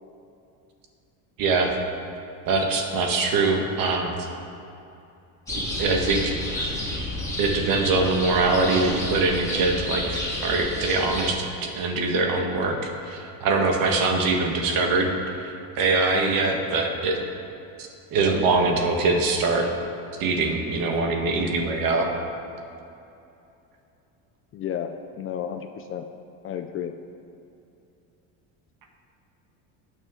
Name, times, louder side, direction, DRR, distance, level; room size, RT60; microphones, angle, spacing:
voice 1, 1.4-1.8 2.5-4.1 5.5-6.8 7.4-15.1 15.4-17.2 17.8-19.7 20.2-22.1, right 3 dB, 55° right, 2 dB, 1.8 m, -23 dB
sound 1, 5.5-11.3, left 1 dB, 10° left, 2.4 m, -30 dB
voice 2, 24.5-26.1 26.4-26.9, left 9 dB, 35° left, 7 dB, 0.4 m, -32 dB
19.0 x 6.4 x 3.8 m, 2.8 s
cardioid pair, 145°, 41 cm